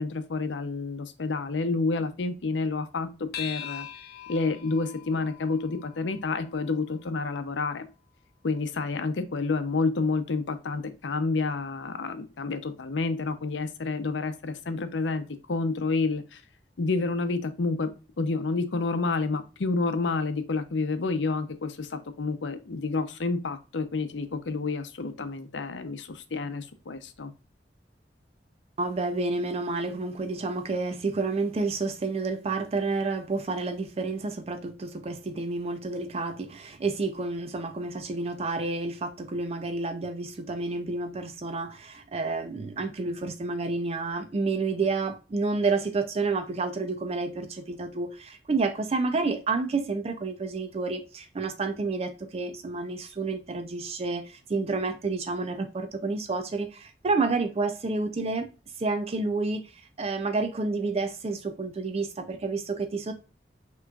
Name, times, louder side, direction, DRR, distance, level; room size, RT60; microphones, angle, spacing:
voice 1, 0.0-3.9 4.3-7.9 8.4-16.4 16.8-17.9 18.2-27.3, left 3 dB, 85° left, 0.6 m, -29 dB
sound 1, 3.3-8.1, left 10 dB, 60° left, 0.9 m, -43 dB
voice 2, 28.8-58.5 58.8-63.1, right 3 dB, 35° right, 0.4 m, -30 dB
5.8 x 3.0 x 2.3 m
head